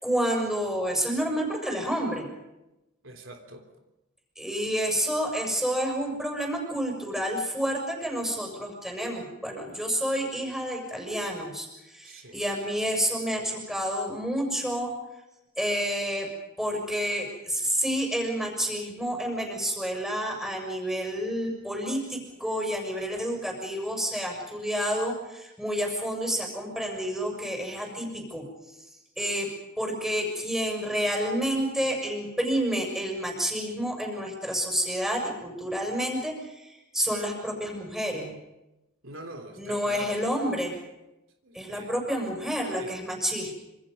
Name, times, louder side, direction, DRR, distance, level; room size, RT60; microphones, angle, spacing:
voice 1, 0.0-2.2 4.4-14.9 15.6-16.3 16.6-28.4 29.2-29.5 29.8-38.3 39.6-40.8 41.5-43.5, equal, ahead, 1 dB, 6.5 m, -29 dB
voice 2, 3.0-3.7 12.0-12.4 39.0-40.2 41.4-41.9 42.8-42.9, right 1 dB, 70° right, 4 dB, 3.4 m, -44 dB
27.0 x 26.5 x 5.4 m, 0.96 s
head